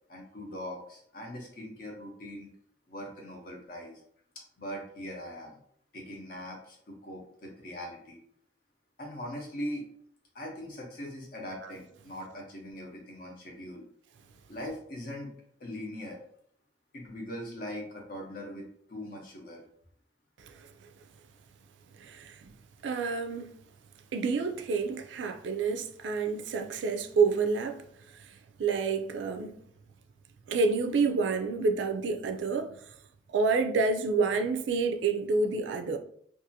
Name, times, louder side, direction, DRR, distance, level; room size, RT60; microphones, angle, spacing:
voice 1, 0.1-2.5 2.9-4.0 4.6-5.5 5.9-8.2 9.0-9.8 10.3-13.9 14.5-15.3 15.6-16.2 16.9-19.6, equal, 50° left, 0.7 m, -41 dB
voice 2, 22.0-22.5 22.8-23.5 24.1-27.8 28.1-28.3 28.6-29.6 30.5-32.7 33.3-36.0, right 4 dB, 70° right, 0.3 m, -28 dB
2.6 x 2.4 x 2.6 m
head